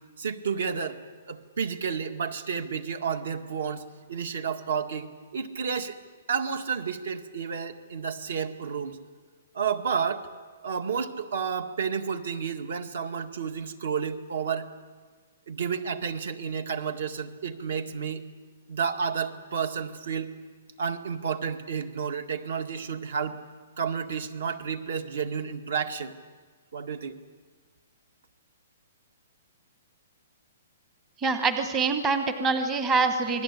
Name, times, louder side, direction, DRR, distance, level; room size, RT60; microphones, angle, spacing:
voice 1, 0.2-1.0 1.3-3.8 4.1-6.0 6.3-9.0 9.5-10.3 10.6-14.7 15.5-18.2 18.7-20.3 20.8-23.4 23.8-26.1 26.7-27.2, right 6 dB, 65° right, 8 dB, 1.9 m, -31 dB
voice 2, 31.2-33.4, right 4 dB, 15° right, 7 dB, 1.0 m, -25 dB
28.0 x 20.5 x 8.5 m, 1.5 s
hypercardioid pair, 175°, 0 cm